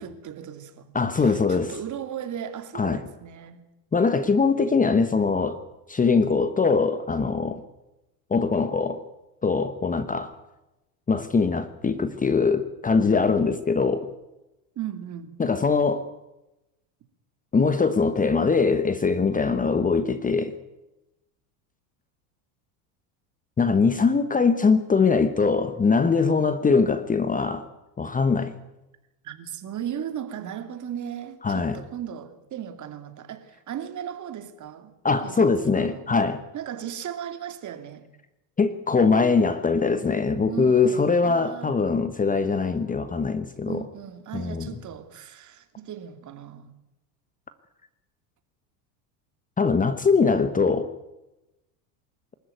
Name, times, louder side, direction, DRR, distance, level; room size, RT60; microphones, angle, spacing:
voice 1, 0.0-3.6 14.8-15.4 25.7-25.8 29.2-34.9 35.2-36.1 36.5-38.1 40.5-41.8 43.6-46.7, right 9 dB, 40° right, 2.8 m, -37 dB
voice 2, 0.9-1.7 2.7-3.0 3.9-5.6 5.9-7.6 8.3-9.0 9.4-10.3 11.1-14.1 15.4-16.1 17.5-20.5 23.6-27.7 28.0-28.5 31.4-31.8 35.0-36.4 38.6-43.8 44.3-44.7 49.6-50.9, left 4 dB, 15° left, 1.2 m, -22 dB
24.0 x 14.0 x 9.3 m
supercardioid pair, 115°, 47 cm